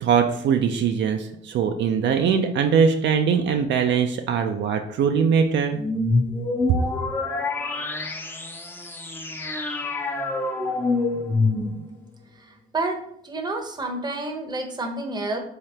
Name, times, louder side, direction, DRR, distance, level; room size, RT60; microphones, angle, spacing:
voice 1, 0.0-5.8, right 6 dB, 65° right, 5 dB, 0.4 m, -21 dB
sound 1, 5.8-12.1, left 3 dB, 10° left, 0.5 m, -26 dB
voice 2, 12.5-13.0 13.2-15.4, right 2 dB, 20° right, 4 dB, 0.7 m, -29 dB
3.8 x 2.8 x 3.3 m, 0.70 s
cardioid pair, 90°, 20 cm